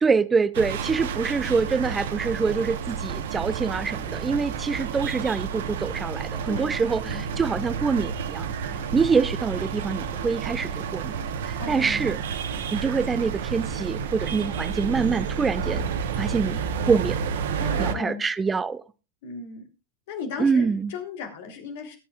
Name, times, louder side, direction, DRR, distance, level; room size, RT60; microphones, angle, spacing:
voice 1, 0.0-8.5 8.9-11.2 11.5-12.2 12.7-15.8 16.2-16.6 16.9-17.3 17.8-18.8 20.4-20.9, right 5 dB, 15° right, 0.5 m, -25 dB
sound 1, 0.5-17.9, right 6 dB, 55° right, 1.1 m, -30 dB
voice 2, 11.6-12.0 17.6-18.2 19.2-19.6 20.1-22.0, left 5 dB, 50° left, 3.3 m, -36 dB
22.0 x 8.5 x 2.4 m
figure-of-eight pair, 90°, 0 cm